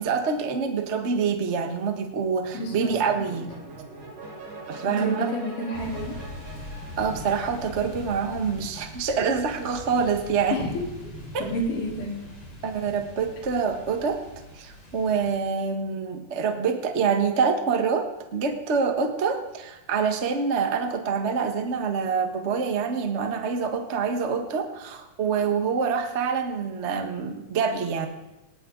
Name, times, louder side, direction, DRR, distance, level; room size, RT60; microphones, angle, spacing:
voice 1, 0.0-3.5 4.7-5.3 7.0-10.6 11.3-11.5 12.6-14.2 14.6-28.1, right 5 dB, 35° right, 4 dB, 1.1 m, -26 dB
voice 2, 2.5-2.9 4.9-6.2 10.5-10.8 11.4-12.2, equal, 90° left, -2 dB, 5.2 m, -29 dB
sound 1, 2.5-7.9, right 2 dB, 85° right, 6.3 m, -43 dB
sound 2, 5.7-15.3, left 1 dB, 70° left, 6.5 m, -41 dB
19.5 x 18.5 x 4.0 m, 0.97 s
omnidirectional pair, 3.6 m